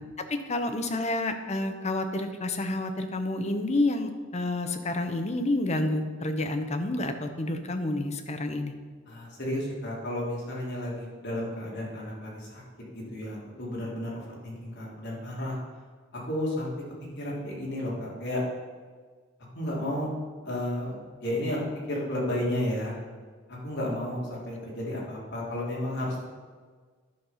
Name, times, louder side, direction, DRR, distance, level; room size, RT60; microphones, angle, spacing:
voice 1, 0.3-8.7, left 2 dB, 35° left, 7 dB, 0.8 m, -29 dB
voice 2, 9.1-12.6 12.9-15.6 16.1-16.7 17.1-18.4 19.5-20.1 20.4-21.0 21.2-21.6 21.9-22.9 23.5-26.2, left 1 dB, 60° left, -4 dB, 2.9 m, -32 dB
10.5 x 5.4 x 5.6 m, 1.5 s
head